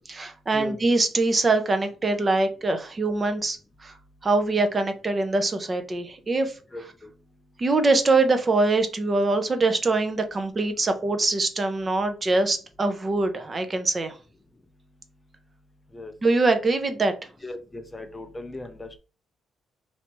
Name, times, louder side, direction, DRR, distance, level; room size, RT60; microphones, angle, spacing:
voice 1, 0.1-3.6 3.8-3.9 4.2-6.5 7.6-14.2 16.2-17.1, right 3 dB, 30° right, 7 dB, 0.6 m, -23 dB
voice 2, 6.7-7.1 15.9-16.1 17.4-19.0, left 2 dB, 20° left, 7 dB, 0.5 m, -37 dB
3.3 x 2.7 x 3.0 m, 0.34 s
cardioid pair, 90°, 0 cm